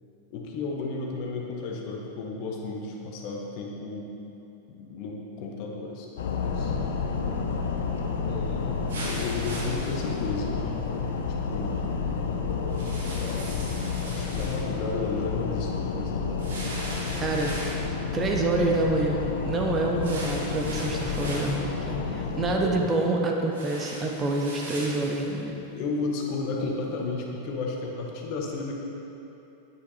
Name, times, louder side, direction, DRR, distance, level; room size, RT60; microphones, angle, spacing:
voice 1, 0.3-4.1 4.7-6.1 6.4-6.7 8.3-10.9 11.5-11.8 13.1-13.7 14.1-16.3 22.5-22.9 25.5-28.7, left 3 dB, 45° left, -1 dB, 1.5 m, -33 dB
sound 1, 6.2-22.6, left 5 dB, 60° left, 0.8 m, -30 dB
sound 2, 8.9-10.2 12.7-14.6 16.4-17.9 20.0-21.6 23.5-25.2, right 1 dB, 60° right, 2.4 m, -38 dB
voice 2, 17.1-17.5 18.1-19.2 19.5-25.5, right 2 dB, 25° right, 1 dB, 1.1 m, -27 dB
10.0 x 8.9 x 4.3 m, 3.0 s
figure-of-eight pair, 90°, 0 cm